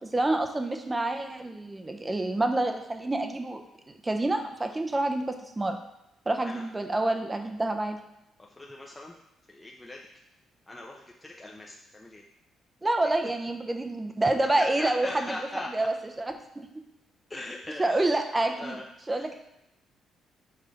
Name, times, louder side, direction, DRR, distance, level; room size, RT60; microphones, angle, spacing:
voice 1, 0.0-3.6 4.0-5.8 6.3-8.0 12.8-15.4 15.7-16.7 17.8-18.8 19.1-19.3, right 2 dB, 20° right, 5 dB, 0.7 m, -28 dB
voice 2, 8.4-9.2 9.5-10.0 10.7-12.2 14.6-15.9 17.3-18.0 18.4-18.8 19.1-19.3, left 1 dB, 15° left, -2 dB, 0.7 m, -40 dB
5.6 x 3.3 x 5.1 m, 0.89 s
cardioid pair, 90°, 0 cm